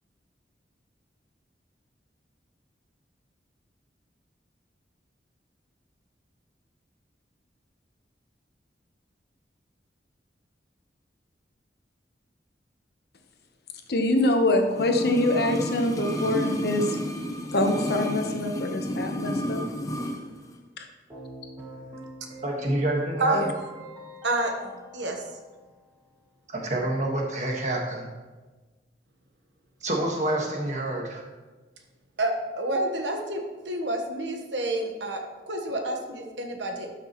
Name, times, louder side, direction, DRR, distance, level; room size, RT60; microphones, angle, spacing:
voice 1, 13.9-17.0 17.4-19.7 20.8-20.9 23.3-23.5, left 1 dB, 60° left, 5 dB, 0.9 m, -25 dB
sound 1, 14.7-20.2 20.5-20.6, equal, 20° left, 0.7 m, -31 dB
Keyboard (musical), 21.1-26.1, equal, 20° right, 1.9 m, -46 dB
voice 2, 22.4-23.5 26.5-28.1 29.8-31.2, right 1 dB, 40° right, -1 dB, 1.5 m, -27 dB
voice 3, 24.2-25.2 32.2-33.4 33.6-36.9, right 2 dB, 90° right, 3 dB, 1.2 m, -29 dB
12.5 x 5.9 x 3.1 m, 1.3 s
head